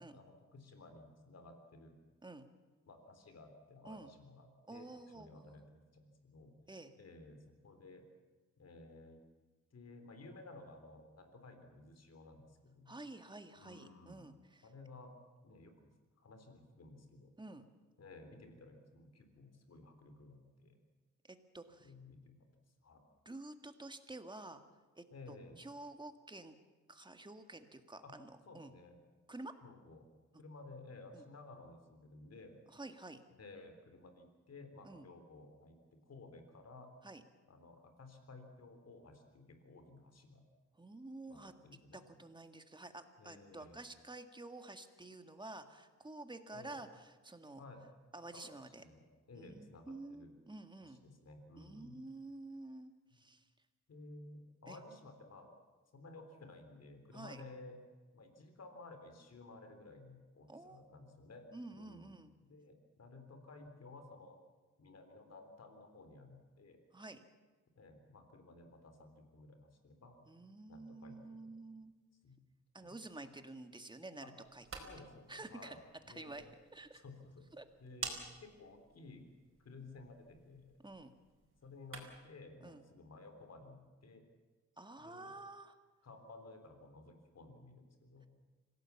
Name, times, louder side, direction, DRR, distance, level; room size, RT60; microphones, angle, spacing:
voice 1, 0.0-2.0 2.9-6.5 7.0-8.1 8.6-9.2 9.7-13.0 13.6-14.3 14.6-15.1 15.4-15.9 16.2-17.3 18.0-20.8 21.8-22.5 22.8-23.0 25.1-25.6 28.0-28.1 28.5-29.0 29.6-30.1 30.4-32.6 33.4-36.9 37.5-40.4 41.3-42.1 43.2-43.8 46.5-46.8 47.6-47.8 48.3-48.5 48.8-50.3 50.8-52.0 53.1-53.2 53.9-55.5 55.9-57.8 58.1-61.5 61.7-62.1 62.4-64.4 64.8-66.8 67.8-70.2 70.7-71.6 72.2-72.4 72.8-72.9 73.2-73.3 74.2-74.3 74.8-76.5 76.9-77.5 77.8-79.3 79.6-80.7 81.6-84.2 85.0-85.3 86.0-88.3, left 3 dB, 60° left, 7 dB, 3.9 m, -55 dB
voice 2, 4.7-5.7 6.7-6.9 12.9-14.7 17.4-17.7 21.3-21.9 23.3-24.6 25.0-26.6 26.9-28.7 29.3-29.5 31.1-31.2 32.7-33.2 34.8-35.1 37.0-37.2 40.8-41.5 41.9-47.6 48.1-48.8 49.4-51.0 51.6-53.4 54.7-54.8 57.1-57.4 60.5-60.8 61.5-62.3 66.9-67.2 70.3-71.9 72.7-74.8 75.3-75.8 76.1-76.5 76.7-77.0 77.5-77.7 80.8-81.2 82.6-82.8 84.8-85.7, right 2 dB, 15° right, 7 dB, 1.8 m, -50 dB
sound 1, 74.4-82.4, right 4 dB, 45° right, 4.6 m, -51 dB
26.0 x 17.5 x 7.2 m, 1.3 s
cardioid pair, 105°, 29 cm